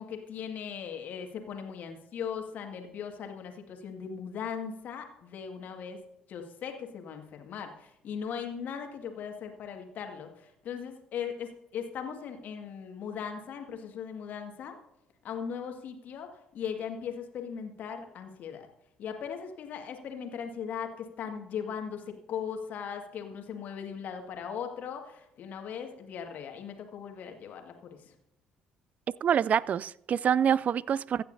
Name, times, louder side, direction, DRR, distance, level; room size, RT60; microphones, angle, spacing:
voice 1, 0.0-6.0 6.3-14.8 15.2-18.7 19.0-28.1, left 7 dB, 55° left, 1.9 m, -39 dB
voice 2, 29.2-31.2, right 8 dB, 45° right, 0.3 m, -26 dB
24.0 x 9.2 x 2.7 m
figure-of-eight pair, 50°, 4 cm